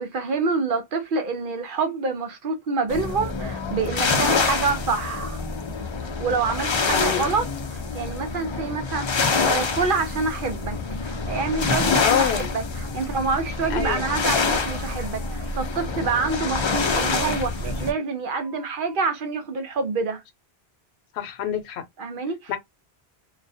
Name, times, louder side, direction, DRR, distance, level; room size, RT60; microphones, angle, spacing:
voice 1, 0.0-5.4 6.2-10.8 11.0-20.2 22.0-22.6, right 4 dB, 60° right, 0.7 m, -27 dB
sound 1, 2.9-17.9, left 4 dB, 50° left, 0.3 m, -26 dB
voice 2, 6.9-7.3 12.0-12.5 13.7-14.0 21.1-21.8 22.5-22.6, left 9 dB, 85° left, 0.9 m, -26 dB
Telephone, 13.3-15.8 16.6-18.9, right 8 dB, 85° right, 0.9 m, -39 dB
2.3 x 2.1 x 2.6 m
omnidirectional pair, 1.1 m